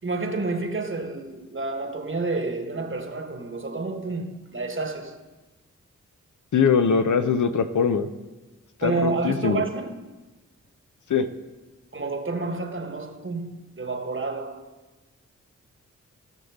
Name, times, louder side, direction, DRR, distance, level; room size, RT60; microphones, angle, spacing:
voice 1, 0.0-5.2 8.8-10.0 11.9-14.7, right 3 dB, 40° right, 1.4 m, -29 dB
voice 2, 6.5-8.1 8.8-9.6 11.1-11.2, left 6 dB, 65° left, 0.7 m, -22 dB
16.5 x 6.4 x 3.6 m
cardioid pair, 40°, 32 cm